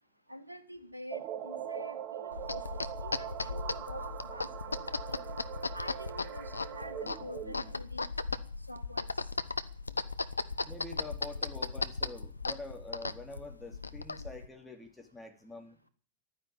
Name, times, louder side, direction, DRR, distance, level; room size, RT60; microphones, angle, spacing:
voice 1, 0.3-4.5 4.8-5.3 5.7-8.1 8.7-9.4, equal, 85° right, 10 dB, 1.6 m, -47 dB
sound 1, 1.1-7.7, right 10 dB, 40° right, 1.4 m, -42 dB
sound 2, 2.3-14.5, left 3 dB, 80° left, 0.7 m, -37 dB
voice 2, 10.6-15.9, left 2 dB, 10° left, 4 dB, 3.1 m, -46 dB
12.0 x 9.7 x 8.7 m, 0.41 s
figure-of-eight pair, 90°, 0 cm